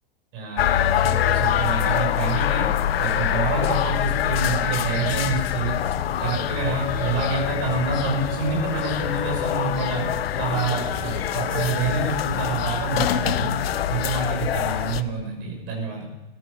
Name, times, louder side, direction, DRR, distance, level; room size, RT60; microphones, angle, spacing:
voice 1, 0.3-2.7 3.0-5.8 6.2-10.1 10.4-13.5 13.9-16.0, right 4 dB, 40° right, 1 dB, 6.0 m, -27 dB
sound 1, 0.6-15.0, left 11 dB, 75° left, 0.8 m, -25 dB
sound 2, 2.5-14.1, left 3 dB, 50° left, 4.3 m, -38 dB
13.5 x 10.0 x 6.4 m, 1.1 s
hypercardioid pair, 135°, 30 cm